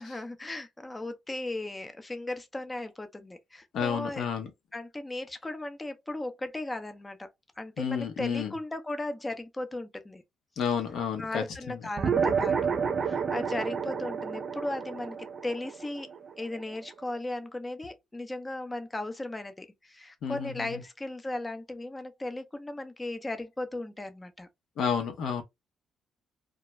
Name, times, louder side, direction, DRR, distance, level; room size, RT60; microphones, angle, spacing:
voice 1, 0.0-4.2 4.7-7.3 7.6-10.2 11.2-16.1 16.4-24.5, left 2 dB, 15° left, 0.5 m, -36 dB
voice 2, 3.7-4.5 7.8-8.5 10.6-11.8 20.2-20.8 24.8-25.4, left 7 dB, 70° left, 0.7 m, -31 dB
sound 1, 12.0-16.8, right 6 dB, 50° right, 0.4 m, -30 dB
2.3 x 2.1 x 2.9 m
cardioid pair, 90°, 0 cm